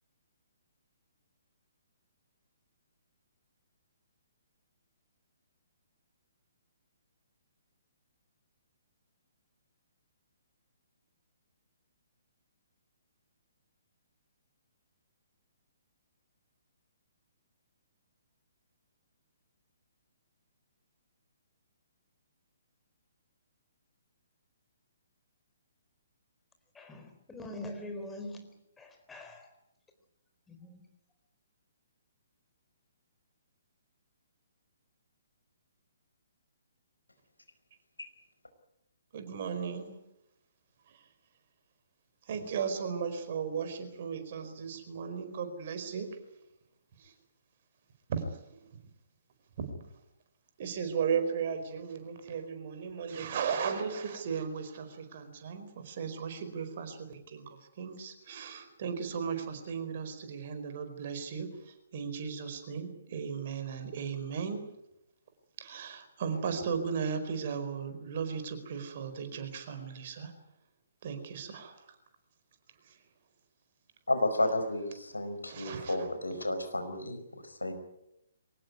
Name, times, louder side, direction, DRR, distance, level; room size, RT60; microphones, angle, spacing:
voice 1, 26.7-29.5 30.5-30.9, left 1 dB, 10° left, 5 dB, 4.1 m, -44 dB
voice 2, 39.1-39.9 40.9-41.0 42.3-46.1 47.0-47.1 48.1-48.8 49.6-49.7 50.6-64.6 65.6-70.3 71.0-71.8 72.9-73.0 75.5-76.1, right 6 dB, 40° right, 8 dB, 4.6 m, -36 dB
voice 3, 74.1-77.7, left 1 dB, 75° left, 8 dB, 5.0 m, -32 dB
24.0 x 19.5 x 9.6 m, 0.85 s
figure-of-eight pair, 130°, 0 cm